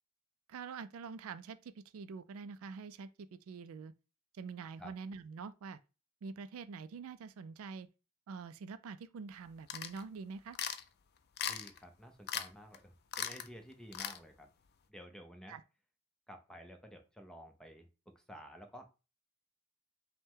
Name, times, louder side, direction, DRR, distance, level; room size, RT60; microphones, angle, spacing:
voice 1, 0.5-3.9 4.3-5.8 6.2-7.9 8.3-10.6 15.5-15.6, right 5 dB, 70° right, 0.3 m, -46 dB
sound 1, 9.7-10.0 10.5-10.8 11.4-11.8 12.3-12.5 12.7-12.8 13.1-13.5 13.9-14.2, left 9 dB, 45° left, 0.4 m, -38 dB
voice 2, 11.5-14.5 14.9-15.6 16.3-17.9 18.1-18.8, equal, 5° left, 0.6 m, -52 dB
5.3 x 2.2 x 3.6 m
head